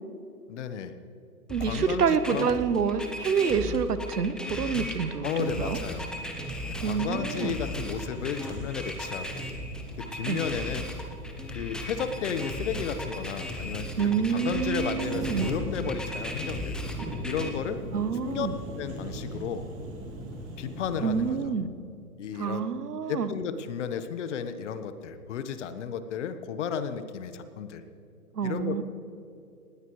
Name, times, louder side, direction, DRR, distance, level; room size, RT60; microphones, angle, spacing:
voice 1, 0.5-0.9 1.6-2.5 4.7-4.9 5.2-6.1 6.8-9.5 10.0-10.9 11.5-16.8 17.2-17.8 18.2-18.5 18.8-19.7 20.6-21.4 22.2-22.7 23.1-27.8 28.4-28.8, left 7 dB, 50° left, 10 dB, 1.3 m, -33 dB
sound 1, 1.5-17.5, left 1 dB, ahead, 0.7 m, -37 dB
voice 2, 1.5-5.8 6.8-7.6 10.3-10.4 14.0-15.5 17.9-18.5 21.0-21.7 22.3-23.3 28.3-28.8, right 6 dB, 85° right, 13 dB, 1.2 m, -27 dB
sound 2, 5.4-21.4, right 1 dB, 25° right, 2.6 m, -40 dB
19.0 x 16.5 x 3.2 m, 2.7 s
hypercardioid pair, 140°, 46 cm